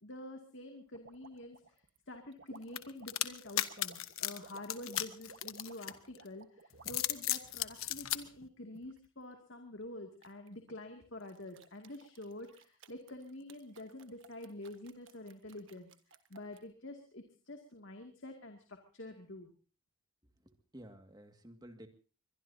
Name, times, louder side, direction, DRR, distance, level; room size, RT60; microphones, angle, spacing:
voice 1, 0.0-1.6 2.1-6.5 6.8-15.9 16.3-19.5, left 1 dB, 60° left, 4 dB, 2.4 m, -47 dB
sound 1, 0.9-7.2 7.8-9.1 10.2-10.8 11.2-16.6, right 4 dB, 65° right, 1.4 m, -58 dB
sound 2, 2.8-6.2 6.7-8.2, left 13 dB, 85° left, 1.2 m, -35 dB
voice 2, 20.5-21.9, right 1 dB, 20° right, 6 dB, 2.0 m, -53 dB
23.5 x 22.0 x 2.8 m, 0.36 s
head